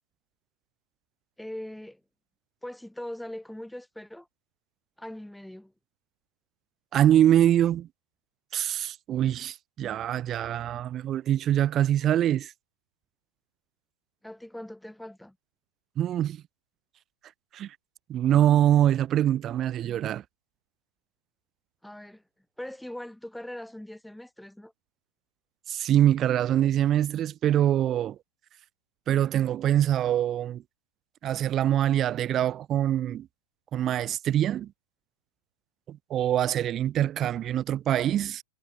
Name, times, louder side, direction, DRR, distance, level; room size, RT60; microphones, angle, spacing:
voice 1, 1.4-2.0 2.6-4.3 5.0-5.7 14.2-15.4 21.8-22.2 22.6-24.7, left 1 dB, ahead, 5.8 m, -41 dB
voice 2, 6.9-7.9 8.5-12.5 16.0-16.4 17.5-17.7 18.1-20.2 25.7-28.2 29.1-30.6 31.2-33.3 33.7-34.7 35.9-38.4, right 11 dB, 25° right, 4.9 m, -24 dB
hypercardioid pair, 140°, 0 cm